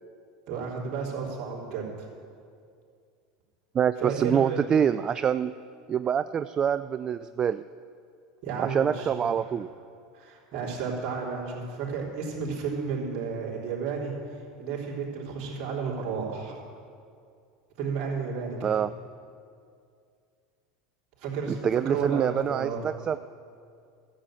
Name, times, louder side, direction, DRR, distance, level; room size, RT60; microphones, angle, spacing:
voice 1, 0.5-2.1 4.0-4.8 8.4-9.5 10.1-16.6 17.8-18.7 21.2-22.8, right 5 dB, 50° right, -3 dB, 3.6 m, -32 dB
voice 2, 3.7-5.5 5.9-7.6 8.6-9.7 18.6-18.9 21.5-23.2, right 8 dB, 30° right, 13 dB, 0.3 m, -25 dB
13.0 x 7.8 x 8.9 m, 2.3 s
hypercardioid pair, 90°, 2 cm